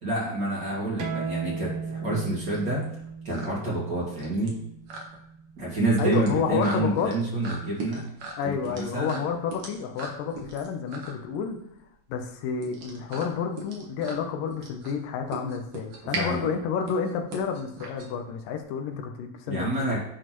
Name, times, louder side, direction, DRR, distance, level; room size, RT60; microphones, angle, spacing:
voice 1, 0.0-2.9 3.2-4.6 5.6-8.1 8.4-9.2 16.1-16.5 19.5-20.0, right 2 dB, 35° right, -6 dB, 2.4 m, -28 dB
sound 1, 0.8-18.6, right 3 dB, 55° right, 2.1 m, -40 dB
sound 2, 1.0-6.2, right 5 dB, 80° right, 2.7 m, -36 dB
voice 2, 6.0-7.1 8.4-11.6 12.1-20.0, left 6 dB, 80° left, 4 dB, 2.5 m, -30 dB
10.0 x 6.4 x 3.1 m, 0.76 s
omnidirectional pair, 3.9 m